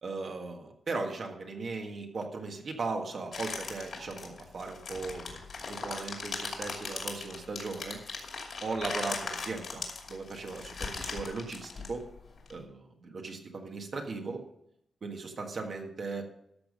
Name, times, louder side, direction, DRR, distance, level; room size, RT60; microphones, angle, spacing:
voice 1, 0.0-8.0 8.6-12.0 12.5-14.4 15.0-16.2, right 3 dB, 50° right, 2 dB, 1.6 m, -38 dB
sound 1, 3.3-12.5, left 4 dB, 60° left, 2.6 m, -39 dB
13.0 x 7.1 x 5.3 m, 0.76 s
wide cardioid pair, 165°, 0 cm